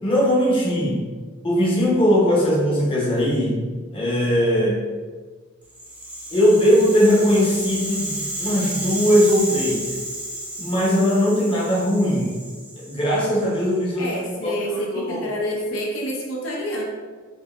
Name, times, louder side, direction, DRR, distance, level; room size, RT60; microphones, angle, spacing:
voice 1, 0.0-1.0 1.4-3.6 3.9-4.8 6.3-8.1 8.4-9.9 10.6-12.4 12.9-14.2 14.4-14.5 15.0-15.3, equal, 25° left, -4 dB, 0.8 m, -19 dB
Rattle (instrument), 5.7-13.9, right 1 dB, 10° right, 0.6 m, -32 dB
voice 2, 14.0-16.8, equal, 70° left, -2 dB, 0.6 m, -28 dB
3.8 x 2.9 x 2.5 m, 1.5 s
head